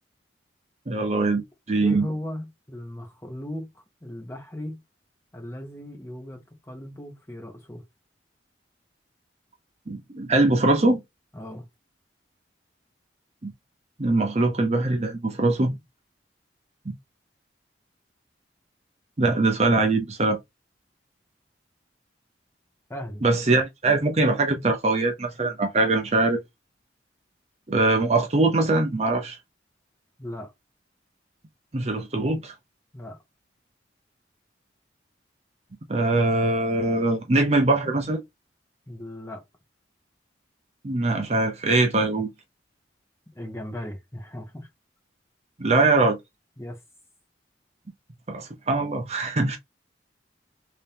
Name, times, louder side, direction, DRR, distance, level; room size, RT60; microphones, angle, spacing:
voice 1, 0.9-2.0 9.9-11.0 13.4-13.5 14.0-15.7 16.9-17.0 19.2-20.4 23.2-26.4 27.7-29.4 31.7-32.5 35.9-38.2 40.8-42.3 45.6-46.2 48.3-49.6, right 2 dB, 35° right, 0.6 m, -22 dB
voice 2, 1.8-4.8 5.3-7.8 11.3-11.7 22.9-23.3 30.2-30.5 32.9-33.2 38.9-39.4 43.3-44.7 46.6-46.8, left 1 dB, 15° left, 1.1 m, -37 dB
3.3 x 2.8 x 3.4 m
head